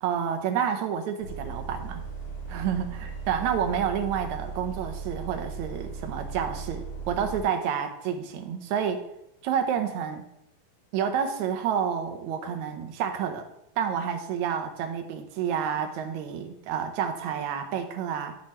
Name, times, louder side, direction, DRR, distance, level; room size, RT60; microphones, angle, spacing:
voice 1, 0.0-2.0 2.5-9.0 9.4-10.3 10.9-13.5 13.8-18.4, right 8 dB, 70° right, 6 dB, 2.0 m, -29 dB
Bus, 1.2-7.4, right 5 dB, 55° left, 3.3 m, -37 dB
12.5 x 5.0 x 4.2 m, 0.80 s
omnidirectional pair, 3.8 m